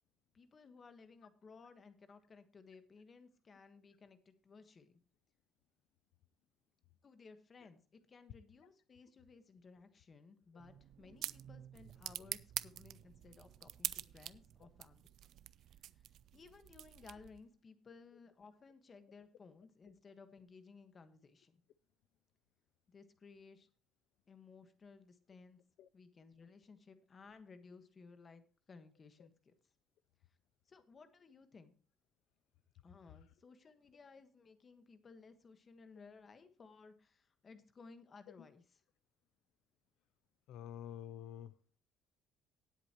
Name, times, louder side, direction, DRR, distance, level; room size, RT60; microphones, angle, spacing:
voice 1, 0.3-4.9 7.0-15.1 16.3-21.6 22.9-23.7 24.3-25.6 25.9-29.5 30.7-31.8 32.8-38.8, left 4 dB, 25° left, 1.4 m, -59 dB
sound 1, 10.6-17.5, right 12 dB, 55° right, 0.5 m, -46 dB
voice 2, 40.5-41.6, left 10 dB, 70° left, 0.5 m, -48 dB
18.0 x 8.1 x 3.0 m
cardioid pair, 160°, 0 cm